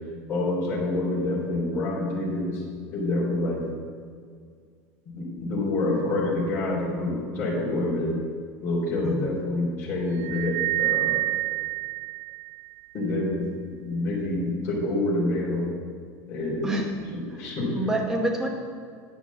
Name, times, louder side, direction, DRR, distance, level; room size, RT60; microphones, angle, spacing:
voice 1, 0.3-2.6 2.9-3.6 5.1-8.1 8.6-11.1 12.9-13.4 13.8-15.7 16.3-16.7 17.1-17.7, left 2 dB, 30° left, -6 dB, 3.2 m, -27 dB
voice 2, 9.0-9.3 16.6-16.9 17.3-17.4 17.7-18.5, right 1 dB, 5° right, 1 dB, 1.0 m, -27 dB
sound 1, 10.2-12.9, right 18 dB, 75° right, 0.5 m, -28 dB
10.0 x 6.0 x 7.1 m, 2.1 s
supercardioid pair, 175°, 8 cm